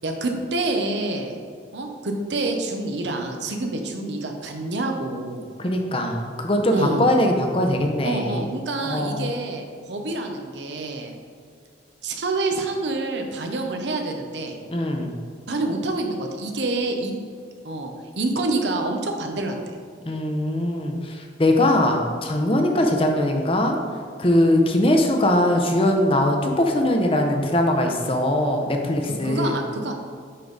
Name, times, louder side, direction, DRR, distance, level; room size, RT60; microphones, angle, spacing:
voice 1, 0.0-1.4 1.7-5.4 6.7-7.1 8.0-11.1 12.0-14.6 15.5-17.2 17.6-19.8 29.2-29.9, right 2 dB, 75° right, 4 dB, 0.8 m, -27 dB
voice 2, 5.6-8.4 8.8-9.3 14.7-15.1 20.1-23.8 24.2-29.5, left 1 dB, 30° left, 3 dB, 0.7 m, -21 dB
9.7 x 3.7 x 3.9 m, 2.1 s
head